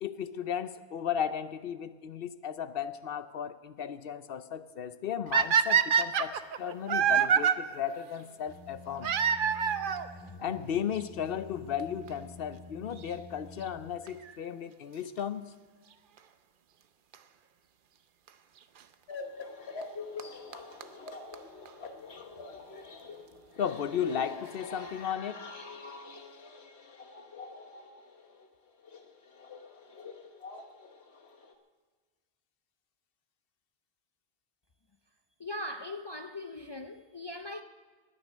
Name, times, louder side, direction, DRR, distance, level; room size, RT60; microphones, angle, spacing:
voice 1, 0.0-9.1 10.4-15.5 23.6-25.4, left 8 dB, 65° left, 0.9 m, -35 dB
sound 1, 5.3-7.5 9.0-10.1 11.0-11.1 11.8-11.9 12.1-12.2 14.1-14.3 17.1-17.2 18.3-18.4 19.8-19.9 20.2-20.3 20.5-20.6 20.8-20.9 21.1-21.2 21.3-21.4 21.7-21.8, right 7 dB, 60° right, 0.8 m, -25 dB
sound 2, 8.5-13.9, left 2 dB, 10° left, 3.7 m, -49 dB
sound 3, 19.1-31.5, left 4 dB, 90° left, 1.4 m, -45 dB
voice 2, 35.4-37.6, left 1 dB, 35° left, 0.5 m, -40 dB
19.5 x 10.0 x 6.3 m
omnidirectional pair, 1.0 m